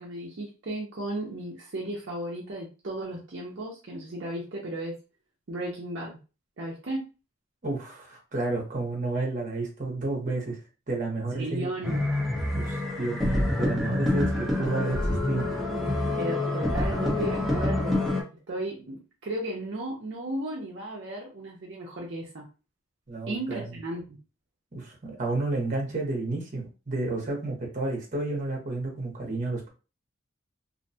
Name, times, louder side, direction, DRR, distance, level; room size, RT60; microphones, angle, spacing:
voice 1, 0.0-5.0 5.5-6.2 6.6-7.1 11.3-12.1 16.2-22.4 23.3-24.2, right 1 dB, 60° right, -3 dB, 0.6 m, -35 dB
voice 2, 7.6-10.6 10.9-11.9 12.5-15.6 23.1-23.6 24.7-29.7, right 2 dB, 40° right, 0 dB, 0.9 m, -31 dB
sound 1, 11.8-18.2, left 2 dB, ahead, 0.6 m, -27 dB
2.5 x 2.2 x 2.6 m, 0.32 s
head